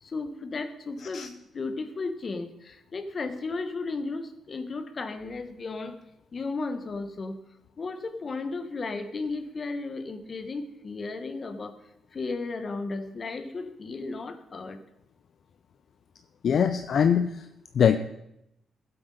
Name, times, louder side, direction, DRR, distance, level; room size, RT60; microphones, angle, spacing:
voice 1, 0.0-6.0 6.3-7.4 7.8-11.8 12.1-14.8, left 3 dB, 30° left, 10 dB, 1.1 m, -34 dB
voice 2, 16.4-17.5 17.7-18.0, left 8 dB, 50° left, 10 dB, 0.5 m, -22 dB
15.5 x 7.9 x 5.2 m, 0.82 s
cardioid pair, 150°, 0 cm